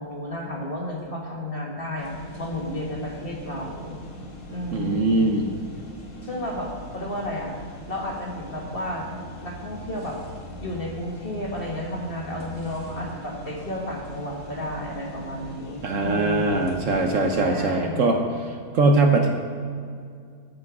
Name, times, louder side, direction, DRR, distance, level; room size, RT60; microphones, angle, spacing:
voice 1, 0.0-2.1 2.4-4.0 4.5-5.4 6.2-7.5 7.9-9.1 9.4-10.2 10.6-16.7 17.4-18.2, left 1 dB, 35° left, -1 dB, 1.7 m, -32 dB
sound 1, 2.0-17.5, left 1 dB, 50° left, 1.9 m, -41 dB
voice 2, 4.7-5.5 15.8-18.2 18.4-19.3, right 3 dB, 60° right, 3 dB, 1.1 m, -21 dB
14.0 x 5.9 x 5.9 m, 2.3 s
omnidirectional pair, 1.7 m